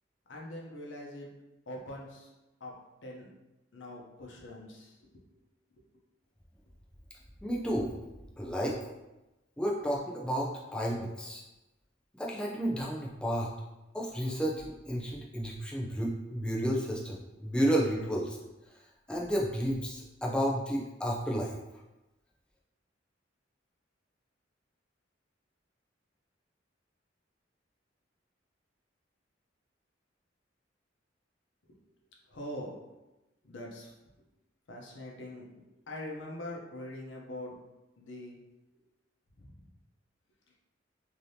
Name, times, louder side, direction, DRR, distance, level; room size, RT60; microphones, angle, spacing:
voice 1, 0.3-1.3 1.7-2.3 2.6-2.7 3.0-3.3 3.7-5.2 5.8-5.9 31.7-31.8 32.3-32.9 33.4-33.9 34.7-37.6 38.0-38.4 39.4-39.7, left 1 dB, 85° left, -1 dB, 0.7 m, -43 dB
voice 2, 7.4-7.9 8.4-8.8 9.6-11.4 12.2-13.5 13.9-18.4 19.1-21.6, equal, 5° left, -4 dB, 0.4 m, -31 dB
3.3 x 2.8 x 2.7 m, 1.0 s
head